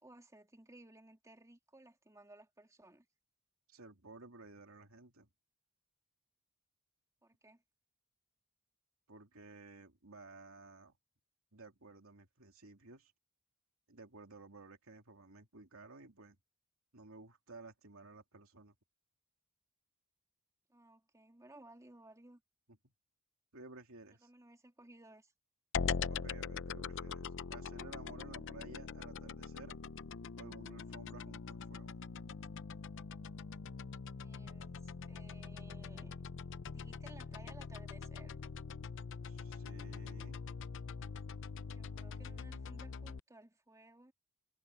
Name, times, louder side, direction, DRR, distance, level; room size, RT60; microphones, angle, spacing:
voice 1, 0.0-3.1 7.2-7.6 20.7-22.4 24.2-25.3 34.2-36.2 36.7-38.4 41.7-44.1, right 1 dB, 15° right, 2.5 m, -58 dB
voice 2, 3.7-5.3 9.1-10.9 11.5-13.1 13.9-16.4 16.9-18.7 23.5-24.3 26.1-29.7 30.4-32.0 39.2-40.4, right 3 dB, 70° right, 2.9 m, -54 dB
sound 1, 25.7-43.2, left 5 dB, 60° left, 0.6 m, -43 dB
head